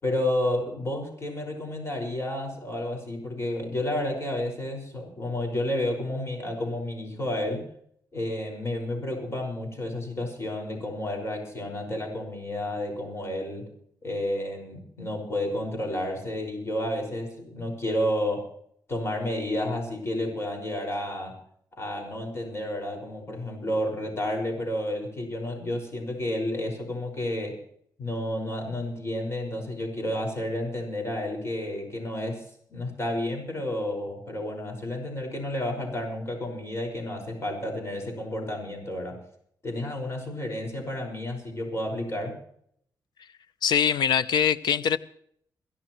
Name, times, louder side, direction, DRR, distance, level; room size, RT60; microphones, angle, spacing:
voice 1, 0.0-7.7 8.1-13.7 14.0-18.5 18.9-21.4 21.8-27.6 28.0-39.2 39.6-42.4, left 1 dB, 40° left, 5.4 m, -31 dB
voice 2, 43.6-45.0, left 8 dB, 80° left, 0.7 m, -23 dB
22.5 x 15.5 x 3.1 m
cardioid pair, 95°, 7 cm